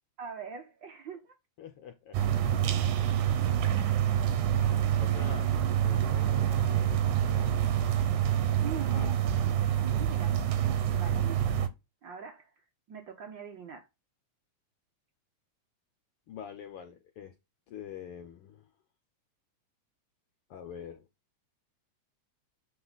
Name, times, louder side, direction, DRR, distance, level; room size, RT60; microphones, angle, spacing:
voice 1, 0.2-1.3 8.6-9.2 9.5-11.5 12.0-12.5 12.9-13.9, right 7 dB, 70° right, 1.1 m, -43 dB
voice 2, 1.6-2.2 2.8-3.1 4.0-4.4 5.0-7.7 8.9-9.1 16.3-17.3 17.7-18.6 20.5-21.0, left 8 dB, 75° left, 1.3 m, -46 dB
sound 1, 2.1-11.7, right 10 dB, 90° right, 2.4 m, -27 dB
7.7 x 4.3 x 4.0 m
omnidirectional pair, 3.5 m